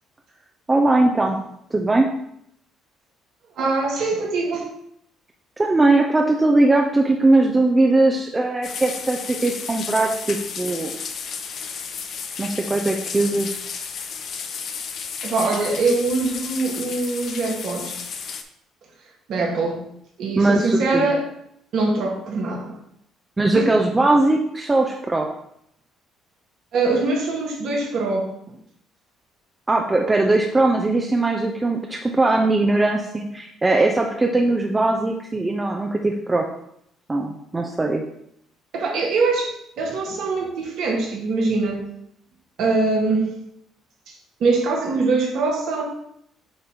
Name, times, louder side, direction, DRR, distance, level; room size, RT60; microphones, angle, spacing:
voice 1, 0.7-1.4 1.7-2.1 5.6-10.9 12.4-13.6 20.4-21.0 23.4-25.3 29.7-36.4 37.1-38.0, right 2 dB, 20° right, 1 dB, 0.8 m, -20 dB
voice 2, 3.6-4.7 15.2-18.0 19.3-19.8 20.2-21.2 21.7-22.7 23.5-23.7 26.7-28.3 38.7-41.8 42.6-43.3 44.1-44.2 44.4-45.8, right 3 dB, 65° right, 0 dB, 1.8 m, -23 dB
sound 1, 8.6-18.4, left 6 dB, 60° left, 0.8 m, -33 dB
8.1 x 2.9 x 5.0 m, 0.72 s
supercardioid pair, 70°, 0 cm